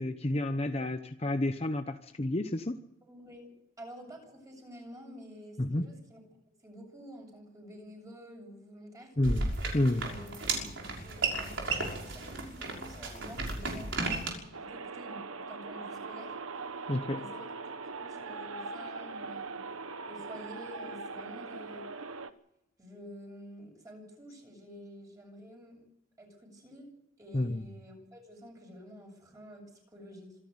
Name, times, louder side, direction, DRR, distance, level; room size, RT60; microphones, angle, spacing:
voice 1, 0.0-2.8 5.6-5.9 9.2-9.5 9.7-10.1 16.9-17.2 27.3-27.6, left 1 dB, 30° left, 7 dB, 0.9 m, -30 dB
voice 2, 3.1-3.5 3.8-6.2 6.6-9.1 10.0-16.3 17.1-17.5 18.0-19.6 20.1-21.9 22.8-25.8 26.2-26.9 27.2-30.4, equal, 15° right, 2 dB, 7.6 m, -49 dB
sound 1, 9.2-14.3, right 3 dB, 60° right, 6.0 m, -34 dB
sound 2, 14.5-22.3, right 4 dB, 90° right, 1.2 m, -41 dB
26.0 x 11.5 x 9.5 m, 0.84 s
head